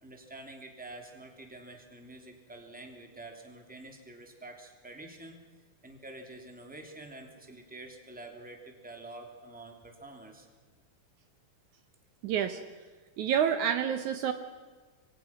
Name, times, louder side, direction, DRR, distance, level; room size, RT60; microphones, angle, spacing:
voice 1, 0.0-5.4 5.8-10.5, right 2 dB, 5° right, 3 dB, 2.7 m, -47 dB
voice 2, 12.2-12.6 13.2-14.3, right 8 dB, 70° right, 8 dB, 2.2 m, -28 dB
27.5 x 23.0 x 6.0 m, 1.4 s
omnidirectional pair, 3.8 m